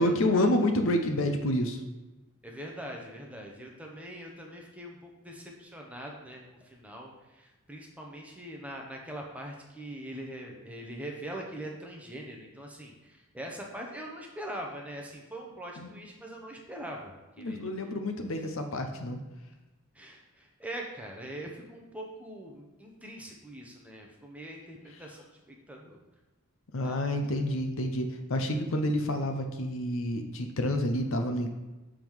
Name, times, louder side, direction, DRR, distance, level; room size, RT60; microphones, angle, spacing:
voice 1, 0.0-1.8 15.8-15.9 17.4-19.2 26.7-31.5, left 1 dB, 60° left, 5 dB, 0.7 m, -28 dB
voice 2, 2.4-17.7 18.3-18.4 19.9-26.0 26.8-27.0, right 1 dB, 5° right, -1 dB, 0.8 m, -42 dB
7.0 x 3.7 x 4.6 m, 1.1 s
head